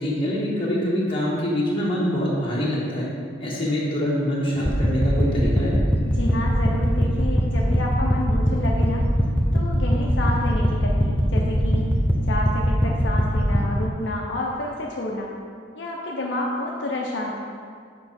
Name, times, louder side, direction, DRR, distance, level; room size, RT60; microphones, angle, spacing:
voice 1, 0.0-3.1 3.4-5.7, equal, 30° left, -6 dB, 1.5 m, -24 dB
sound 1, 4.6-13.6, equal, 10° left, 0.6 m, -22 dB
voice 2, 6.1-9.1 9.5-11.9 12.2-15.3 15.7-17.4, left 1 dB, 70° left, -2 dB, 0.7 m, -29 dB
6.8 x 4.8 x 4.3 m, 2.1 s
head